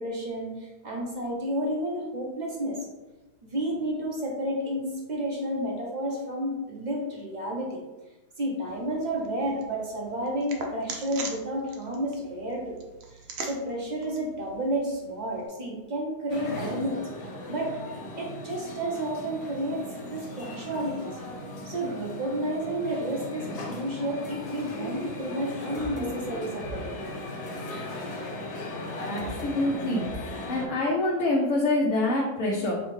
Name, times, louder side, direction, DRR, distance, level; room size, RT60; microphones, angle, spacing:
voice 1, 0.0-2.8 3.4-7.8 8.4-12.8 13.4-17.0 17.5-17.7 18.2-19.8 20.1-21.2 21.6-27.0, right 1 dB, 50° right, -2 dB, 0.5 m, -31 dB
sound 1, 8.7-15.5, right 4 dB, 65° right, 0.9 m, -42 dB
sound 2, 16.3-30.7, left 1 dB, 90° left, 1.4 m, -37 dB
sound 3, 24.2-25.5 25.7-29.5 30.0-30.3, equal, 50° left, 0.5 m, -44 dB
voice 2, 29.1-30.0 30.4-32.8, left 2 dB, 65° left, -3 dB, 0.9 m, -26 dB
5.4 x 2.1 x 3.1 m, 1.1 s
omnidirectional pair, 1.7 m